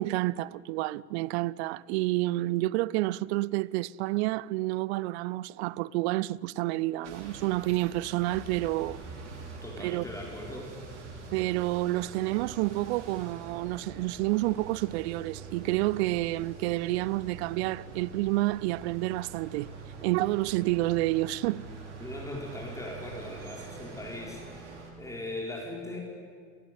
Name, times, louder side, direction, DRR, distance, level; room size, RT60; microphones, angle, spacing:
voice 1, 0.0-9.0 9.8-10.0 11.3-19.7 20.0-21.7, right 18 dB, 65° right, 0.6 m, -29 dB
sound 1, 7.0-24.9, right 4 dB, 80° right, 3.6 m, -45 dB
voice 2, 9.4-10.7 22.0-24.7 25.0-26.0, left 1 dB, 10° left, 5.3 m, -39 dB
30.0 x 15.5 x 8.3 m
hypercardioid pair, 70°, 35 cm